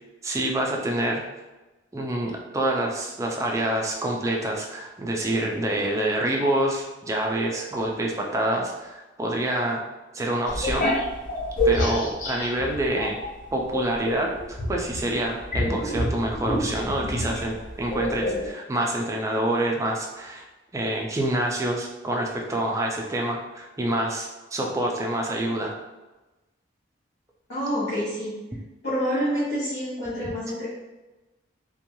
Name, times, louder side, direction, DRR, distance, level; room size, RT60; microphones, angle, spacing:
voice 1, 0.2-1.2 1.9-9.8 10.1-10.9 11.6-13.2 13.5-20.4 20.7-25.7, right 1 dB, 15° right, 0 dB, 0.3 m, -27 dB
sound 1, 10.5-13.3 13.7-18.5, left 1 dB, 40° left, 0.5 m, -27 dB
voice 2, 27.5-28.4 28.8-30.8, equal, 65° left, -11 dB, 0.9 m, -27 dB
2.9 x 2.2 x 2.6 m, 1.1 s
head